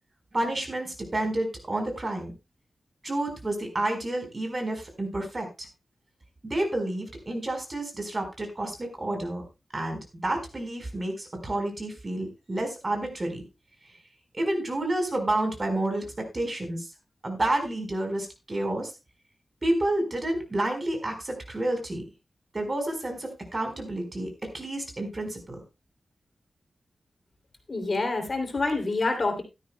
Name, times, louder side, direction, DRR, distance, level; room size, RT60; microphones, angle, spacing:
voice 1, 0.3-2.3 3.0-5.7 6.4-9.4 9.7-13.4 14.3-16.9 17.2-18.9 19.6-22.0 22.5-25.6, right 1 dB, 30° right, 4 dB, 4.5 m, -30 dB
voice 2, 27.7-29.4, left 3 dB, 45° left, 5 dB, 2.9 m, -27 dB
16.0 x 12.5 x 2.2 m, 0.25 s
wide cardioid pair, 130°, 0 cm